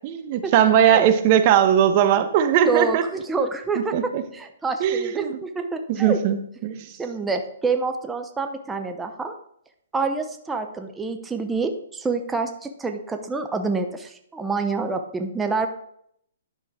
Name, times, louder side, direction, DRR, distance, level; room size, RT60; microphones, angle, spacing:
voice 1, 0.0-3.0 3.7-4.2 4.8-5.4 5.9-6.4 6.6-6.9, right 9 dB, 40° right, 8 dB, 1.0 m, -19 dB
voice 2, 2.6-6.2 7.0-9.3 9.9-15.7, right 4 dB, 10° right, 6 dB, 0.6 m, -27 dB
10.0 x 6.1 x 3.6 m, 0.71 s
hypercardioid pair, 140°, 0 cm